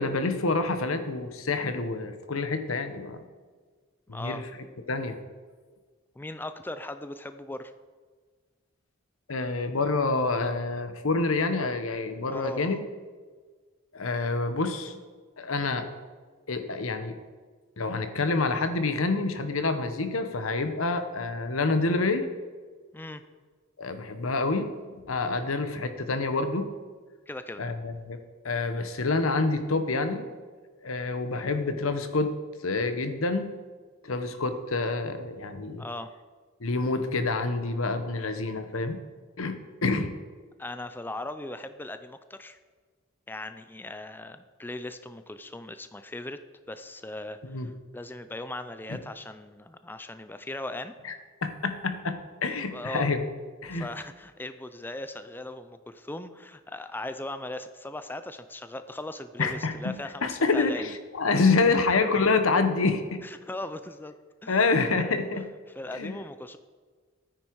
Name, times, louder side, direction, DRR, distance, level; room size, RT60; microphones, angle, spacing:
voice 1, 0.0-3.2 4.1-4.4 4.9-5.2 9.3-12.8 13.9-15.0 15.4-15.9 16.5-17.2 17.8-22.3 23.8-26.7 27.6-28.2 28.4-30.3 30.8-32.3 32.6-33.5 34.0-35.8 36.6-39.0 39.4-40.1 47.4-47.7 48.9-49.0 51.0-51.1 51.4-53.2 53.6-53.9 59.4-63.2 64.5-65.5 65.9-66.2, left 3 dB, 80° left, 9 dB, 1.0 m, -27 dB
voice 2, 4.1-4.4 6.2-7.7 12.3-12.8 22.9-23.2 27.3-27.6 35.8-36.1 40.6-42.6 43.3-46.4 46.7-50.9 52.6-53.1 53.7-60.8 63.2-64.1 64.4-64.7 65.7-66.6, left 1 dB, 10° left, 10 dB, 0.4 m, -38 dB
13.0 x 9.6 x 4.7 m, 1.5 s
head